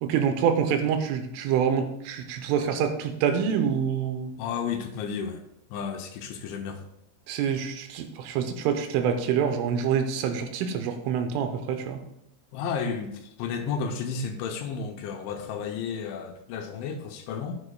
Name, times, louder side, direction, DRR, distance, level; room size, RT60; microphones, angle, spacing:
voice 1, 0.0-4.3 7.3-12.0, right 7 dB, 80° right, 6 dB, 3.3 m, -26 dB
voice 2, 4.4-5.4 5.7-6.8 12.5-17.6, left 6 dB, 80° left, 4 dB, 2.9 m, -32 dB
12.5 x 9.7 x 2.3 m, 0.77 s
omnidirectional pair, 5.7 m